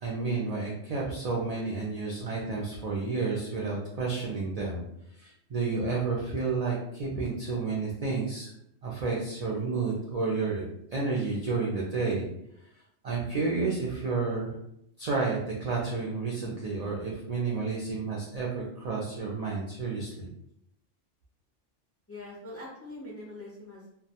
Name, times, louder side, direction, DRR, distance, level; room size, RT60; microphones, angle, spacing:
voice 1, 0.0-4.8 5.2-8.5 8.8-12.3 13.0-14.6 15.0-20.3, right 4 dB, 65° right, -4 dB, 0.4 m, -31 dB
voice 2, 22.1-23.9, left 1 dB, 25° left, -5 dB, 0.3 m, -43 dB
2.2 x 2.2 x 2.8 m, 0.76 s
omnidirectional pair, 1.2 m